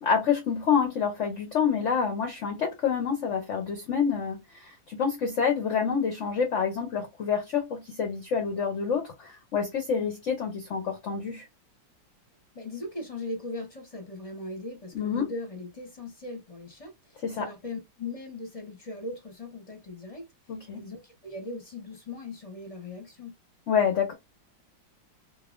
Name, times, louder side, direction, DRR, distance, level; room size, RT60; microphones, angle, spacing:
voice 1, 0.0-11.4 14.9-15.3 17.2-17.5 20.5-20.8 23.7-24.1, left 6 dB, 55° left, 0.8 m, -27 dB
voice 2, 12.5-20.3 20.7-23.3, left 2 dB, 25° left, 0.9 m, -39 dB
3.9 x 3.0 x 2.5 m
omnidirectional pair, 2.1 m